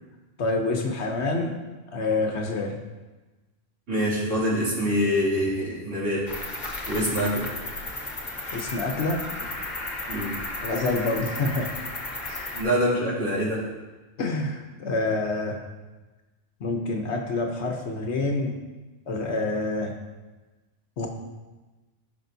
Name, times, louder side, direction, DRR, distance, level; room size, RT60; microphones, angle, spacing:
voice 1, 0.4-1.6 1.9-2.8 7.0-7.1 8.5-9.2 10.6-11.7 12.2-12.5 14.2-15.6 16.6-18.5 19.1-20.0 21.0-21.1, left 2 dB, 65° left, 2 dB, 1.1 m, -27 dB
voice 2, 3.9-6.3 6.9-7.5 10.1-10.3 12.5-13.7, equal, 85° right, -7 dB, 3.0 m, -25 dB
Cricket, 6.3-12.6, left 2 dB, 40° left, 1.2 m, -34 dB
14.5 x 5.7 x 2.7 m, 1.2 s
omnidirectional pair, 1.3 m